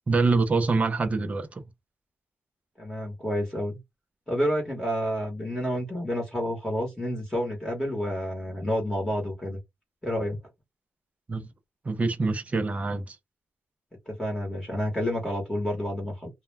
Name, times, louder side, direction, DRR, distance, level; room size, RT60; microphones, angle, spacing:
voice 1, 0.1-1.6 11.3-11.5 11.8-13.2, right 3 dB, 25° right, 0.5 m, -25 dB
voice 2, 2.8-3.8 4.3-9.6 10.0-10.4 14.1-16.3, equal, 10° left, 1.0 m, -29 dB
2.3 x 2.1 x 3.2 m
wide cardioid pair, 140°, 5 cm